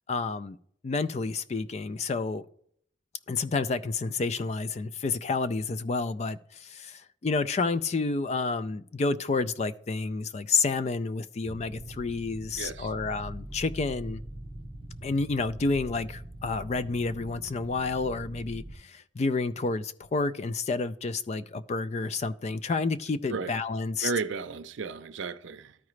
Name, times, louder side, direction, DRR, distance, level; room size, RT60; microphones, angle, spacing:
voice 1, 0.1-0.6 0.8-2.5 3.3-14.2 15.0-24.1, left 3 dB, 35° left, 0.3 m, -30 dB
sound 1, 11.5-18.7, right 1 dB, 25° right, 0.6 m, -42 dB
voice 2, 12.6-12.9 23.3-23.5 24.0-25.8, right 5 dB, 85° right, 0.5 m, -33 dB
12.5 x 4.8 x 3.1 m
head